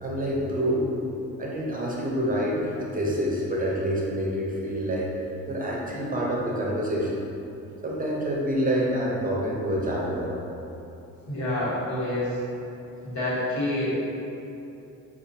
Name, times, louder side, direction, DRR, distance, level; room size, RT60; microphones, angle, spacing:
voice 1, 0.0-0.8 1.4-5.1 5.5-7.2 7.8-10.3, equal, 30° right, -4 dB, 0.7 m, -27 dB
voice 2, 11.3-12.4 13.0-13.9, left 1 dB, 70° left, -8 dB, 1.2 m, -27 dB
4.8 x 2.4 x 2.7 m, 2.8 s
cardioid pair, 90°, 30 cm